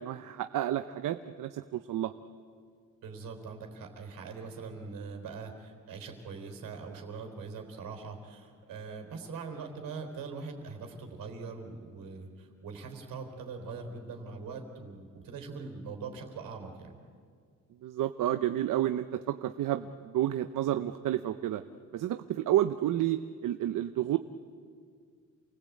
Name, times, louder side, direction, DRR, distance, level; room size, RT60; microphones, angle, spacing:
voice 1, 0.0-2.1 17.8-21.6 21.9-24.2, right 12 dB, 70° right, 10 dB, 0.8 m, -30 dB
voice 2, 3.0-16.9, right 4 dB, 85° right, 4 dB, 4.1 m, -42 dB
28.5 x 19.0 x 8.6 m, 2.1 s
cardioid pair, 105°, 33 cm